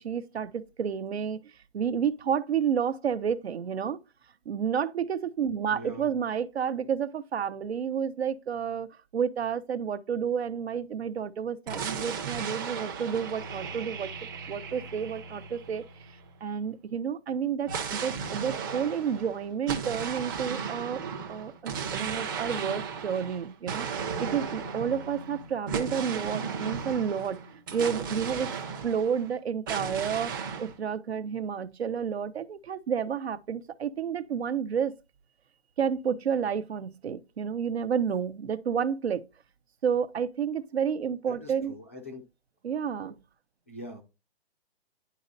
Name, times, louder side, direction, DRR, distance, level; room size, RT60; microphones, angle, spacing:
voice 1, 0.0-4.0 4.5-8.9 9.1-15.8 16.4-21.0 21.3-23.9 24.2-28.5 28.8-34.9 35.8-39.2 39.8-41.7 42.6-43.1, right 7 dB, 80° right, 1.0 m, -30 dB
voice 2, 5.7-6.2 41.3-42.2 43.7-44.0, equal, 15° left, 0.4 m, -43 dB
sound 1, 11.7-16.4 17.7-29.3 29.7-30.7, right 6 dB, 20° right, 0.6 m, -35 dB
10.0 x 4.2 x 2.6 m
hypercardioid pair, 165°, 31 cm